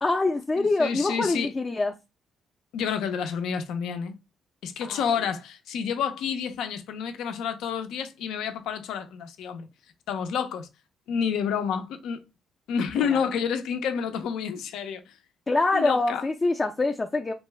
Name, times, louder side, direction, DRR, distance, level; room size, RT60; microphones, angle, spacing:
voice 1, 0.0-1.9 4.8-5.1 13.0-13.2 15.5-17.3, left 3 dB, 25° left, 0.4 m, -25 dB
voice 2, 0.6-1.5 2.7-4.1 4.6-9.7 10.1-10.7 11.1-12.2 12.7-15.1 15.7-16.2, left 7 dB, 85° left, 0.5 m, -29 dB
2.6 x 2.2 x 3.2 m
cardioid pair, 90°, 0 cm